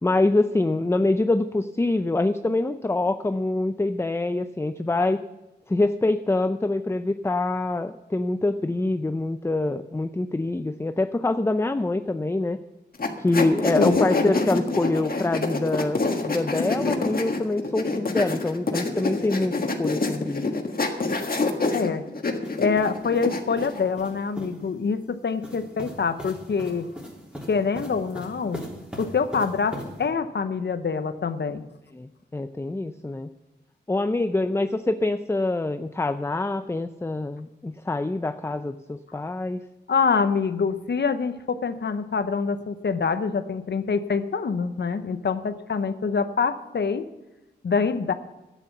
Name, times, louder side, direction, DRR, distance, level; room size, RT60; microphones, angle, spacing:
voice 1, 0.0-5.2 5.7-12.6 13.2-19.5 19.8-20.5 31.9-33.3 33.9-39.6, left 2 dB, 15° left, 10 dB, 0.5 m, -25 dB
sound 1, 13.0-23.8, left 3 dB, 55° left, 1.6 m, -26 dB
voice 2, 21.7-22.0 22.6-26.9 27.5-28.7 29.0-31.6 39.9-47.1 47.6-48.1, left 5 dB, 70° left, 10 dB, 0.8 m, -25 dB
sound 2, 22.4-24.6 25.4-30.1, equal, 5° right, 3.4 m, -39 dB
11.0 x 9.2 x 7.1 m, 1.0 s
wide cardioid pair, 65°, 18 cm